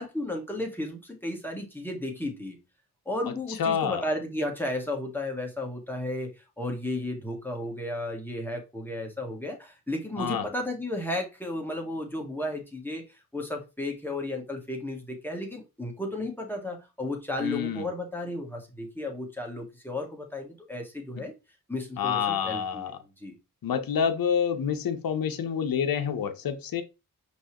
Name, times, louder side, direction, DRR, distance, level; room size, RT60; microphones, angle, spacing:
voice 1, 0.0-2.6 3.0-21.3 21.7-23.4, left 1 dB, 5° left, 1.7 m, -34 dB
voice 2, 3.6-4.0 10.2-10.5 17.4-17.8 22.0-23.0 23.6-26.8, left 7 dB, 70° left, 0.8 m, -28 dB
5.3 x 3.2 x 3.0 m
cardioid pair, 50°, 37 cm